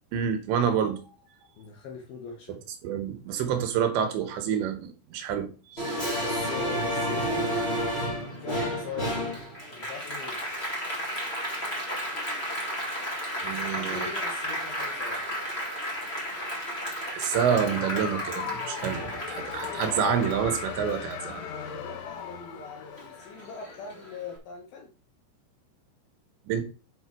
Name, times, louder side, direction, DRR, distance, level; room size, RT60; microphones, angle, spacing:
voice 1, 0.1-1.0 2.8-6.0 13.4-14.1 17.1-21.4 26.5-26.6, right 8 dB, 75° right, 7 dB, 2.9 m, -28 dB
voice 2, 1.6-2.6 6.2-7.6 8.4-9.2 9.7-10.4 13.6-15.2 21.4-24.9, left 4 dB, 70° left, 2 dB, 2.5 m, -41 dB
Applause, 5.8-22.6 23.0-24.1, equal, 35° left, 0.9 m, -32 dB
sound 1, 17.3-23.9, left 8 dB, 90° left, 3.4 m, -38 dB
8.2 x 5.5 x 4.6 m, 0.34 s
omnidirectional pair, 5.6 m